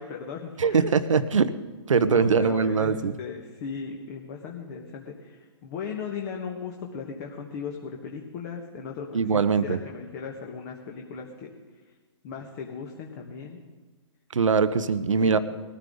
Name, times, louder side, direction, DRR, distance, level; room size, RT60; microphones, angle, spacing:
voice 1, 0.0-0.9 2.0-11.5 12.2-13.6 15.2-15.4, left 6 dB, 35° left, 2 dB, 1.6 m, -37 dB
voice 2, 0.6-1.5 1.9-3.1 9.1-9.8 14.3-15.4, right 5 dB, 80° right, 13 dB, 1.0 m, -22 dB
20.5 x 14.0 x 3.9 m, 1.3 s
hypercardioid pair, 140°, 16 cm